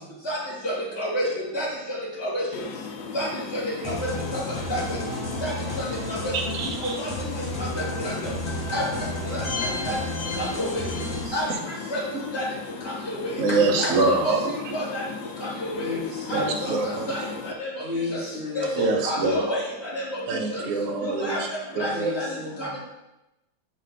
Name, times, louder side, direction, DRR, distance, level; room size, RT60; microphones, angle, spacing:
voice 1, 0.6-1.3 1.5-2.6 3.1-4.4 4.7-5.0 5.4-6.3 6.6-7.1 7.3-8.3 8.7-9.9 10.4-10.9 11.3-12.4 12.8-13.4 13.8-13.9 14.2-14.3 14.7-15.0 15.4-16.0 16.3-17.8 18.1-18.2 18.5-20.2 20.5-20.6 21.0-22.8, equal, 15° left, -6 dB, 1.8 m, -30 dB
sound 1, 2.5-17.5, left 5 dB, 75° left, 0.9 m, -37 dB
sound 2, 3.8-11.2, left 1 dB, 35° left, 0.4 m, -32 dB
voice 2, 6.3-7.0 13.4-14.5 16.3-17.1 18.8-19.5 20.3-21.4 21.8-22.1, right 3 dB, 70° right, 2 dB, 0.7 m, -25 dB
voice 3, 10.9-11.5 13.5-14.2 15.8-16.7 17.8-18.6 21.9-22.7, left 3 dB, 25° right, -11 dB, 2.2 m, -34 dB
6.5 x 3.6 x 4.0 m, 0.96 s
omnidirectional pair, 2.3 m